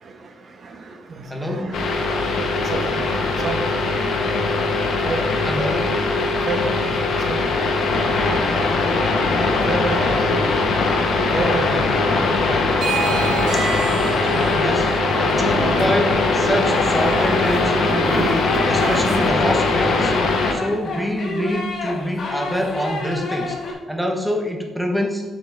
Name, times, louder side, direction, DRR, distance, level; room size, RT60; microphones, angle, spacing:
voice 1, 0.0-5.6 6.2-11.7 20.7-20.9 22.0-22.1, right 3 dB, 50° right, 4 dB, 1.0 m, -33 dB
voice 2, 1.3-1.7 5.4-5.9 11.3-11.8 12.5-12.7 13.5-13.7 14.2-14.9 15.2-20.1 20.5-25.2, equal, ahead, 2 dB, 1.1 m, -25 dB
sound 1, 1.7-20.5, left 3 dB, 65° left, 1.3 m, -20 dB
sound 2, 12.7-19.3, right 6 dB, 75° right, 0.7 m, -30 dB
sound 3, 16.1-23.7, left 3 dB, 50° left, 1.8 m, -29 dB
6.9 x 6.3 x 3.6 m, 1.3 s
cardioid pair, 90°, 0 cm